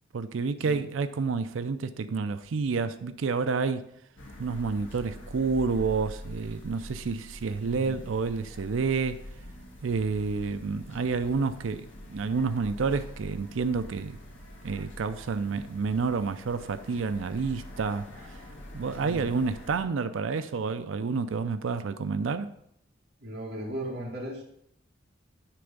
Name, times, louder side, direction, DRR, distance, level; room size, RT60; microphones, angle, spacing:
voice 1, 0.1-3.8 4.4-9.2 9.8-14.2 14.6-18.1 18.7-22.5, right 4 dB, 90° right, 11 dB, 0.5 m, -29 dB
sound 1, 4.2-19.8, left 1 dB, 90° left, 1.7 m, -45 dB
voice 2, 7.6-8.0 19.0-19.4 23.2-24.5, equal, 55° right, -4 dB, 2.3 m, -37 dB
9.8 x 3.5 x 5.3 m, 0.73 s
head